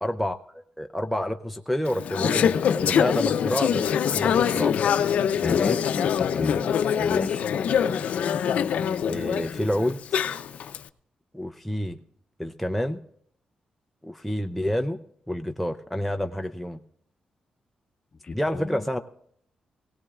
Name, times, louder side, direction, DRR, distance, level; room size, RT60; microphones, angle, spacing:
voice 1, 0.0-4.8 9.1-10.0 11.3-12.0 12.4-13.0 14.0-15.0 15.3-16.8 18.3-19.0, equal, ahead, 5 dB, 0.5 m, -28 dB
Conversation / Chatter, 1.9-10.8, left 8 dB, 75° left, 0.5 m, -24 dB
voice 2, 5.4-6.6 6.9-7.4 18.2-18.8, left 4 dB, 35° left, 8 dB, 0.9 m, -30 dB
21.0 x 17.5 x 2.4 m, 0.69 s
wide cardioid pair, 125°, 2 cm